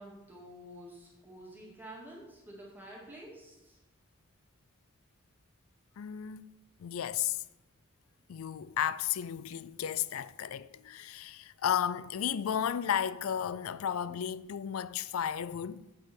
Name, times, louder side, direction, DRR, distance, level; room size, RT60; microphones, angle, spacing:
voice 1, 0.0-3.8, right 1 dB, 10° right, 2.3 m, -49 dB
voice 2, 6.0-6.5 6.8-7.4 8.3-15.8, left 9 dB, 85° left, 0.4 m, -33 dB
7.6 x 6.4 x 6.1 m
head